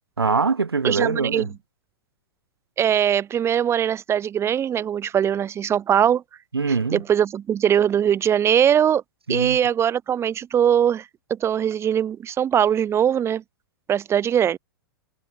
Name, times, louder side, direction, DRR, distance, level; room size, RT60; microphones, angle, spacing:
voice 1, 0.2-1.5 6.5-7.0 9.3-9.6, right 4 dB, 80° right, 2.9 m, -23 dB
voice 2, 0.8-1.5 2.8-6.2 6.9-9.0 9.3-11.0 11.4-13.4 13.9-14.6, right 9 dB, 20° right, 2.6 m, -21 dB
figure-of-eight pair, 110°, 13 cm